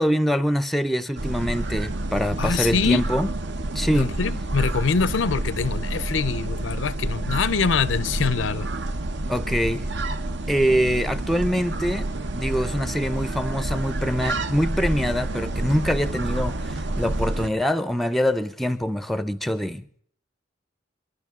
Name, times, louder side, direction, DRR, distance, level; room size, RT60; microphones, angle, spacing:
voice 1, 0.0-3.3 3.7-4.1 9.3-9.9 10.5-19.8, equal, ahead, 0.5 m, -24 dB
sound 1, 1.2-17.5, right 1 dB, 60° right, 0.9 m, -28 dB
voice 2, 2.4-3.1 3.9-8.7, left 5 dB, 75° left, 0.6 m, -24 dB
29.0 x 11.0 x 3.7 m
head